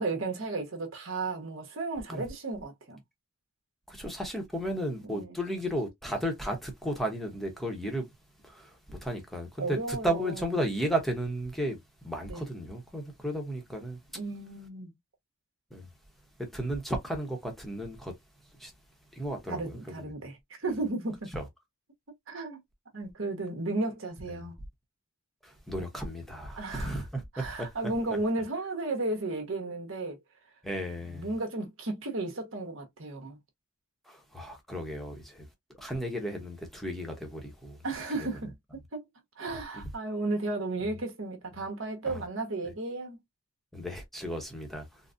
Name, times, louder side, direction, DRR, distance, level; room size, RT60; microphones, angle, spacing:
voice 1, 0.0-3.0 5.0-5.4 9.6-10.4 12.3-12.5 14.1-14.9 19.5-21.3 22.3-22.6 22.9-24.5 26.6-27.0 27.3-30.2 31.1-33.4 37.8-38.5 38.9-39.1 39.4-43.2, right 2 dB, 60° right, 1.0 m, -34 dB
voice 2, 3.9-8.1 8.4-14.0 15.7-15.9 16.5-18.2 18.6-18.7 19.1-20.1 21.3-21.5 24.3-24.5 25.4-27.7 30.6-31.3 34.1-35.5 35.8-37.8 38.2-38.3 42.1-42.2 43.7-45.0, right 1 dB, ahead, 0.8 m, -34 dB
3.9 x 2.1 x 2.5 m
head